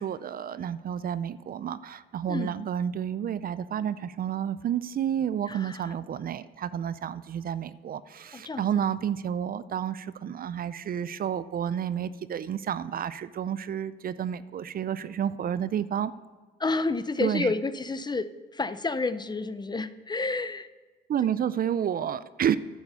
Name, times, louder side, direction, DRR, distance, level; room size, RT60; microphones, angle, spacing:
voice 1, 0.0-16.1 17.2-17.5 21.1-22.6, right 9 dB, 50° right, 16 dB, 0.4 m, -30 dB
voice 2, 5.5-5.9 8.3-8.7 16.6-20.7, left 3 dB, 20° left, 13 dB, 0.5 m, -30 dB
10.5 x 7.1 x 6.8 m, 1.4 s
cardioid pair, 90°, 20 cm